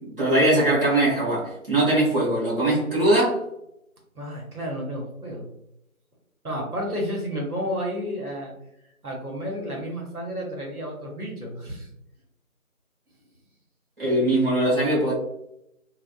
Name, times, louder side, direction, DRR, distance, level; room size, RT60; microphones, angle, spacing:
voice 1, 0.0-3.4 14.0-15.1, right 1 dB, 40° right, -8 dB, 0.9 m, -21 dB
voice 2, 4.2-5.5 6.4-8.5 9.0-11.9, equal, 85° right, -1 dB, 1.1 m, -31 dB
2.5 x 2.3 x 2.2 m, 0.81 s
figure-of-eight pair, 175°, 43 cm